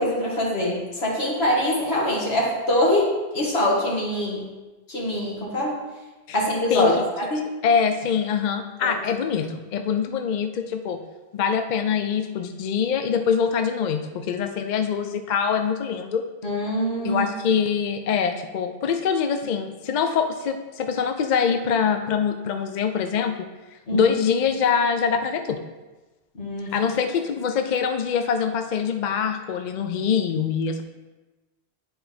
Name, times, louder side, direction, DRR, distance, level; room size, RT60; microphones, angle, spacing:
voice 1, 0.0-4.5 4.9-5.7 6.3-6.9 7.3-7.4 8.8-8.9 16.4-17.3 23.9-24.1 26.4-26.8, left 1 dB, 75° left, -5 dB, 2.2 m, -24 dB
voice 2, 6.7-7.0 7.6-11.0 11.3-16.2 17.0-23.5 23.9-25.6 26.7-30.8, left 6 dB, 55° left, 6 dB, 0.5 m, -24 dB
10.0 x 4.4 x 3.4 m, 1.2 s
omnidirectional pair, 1.1 m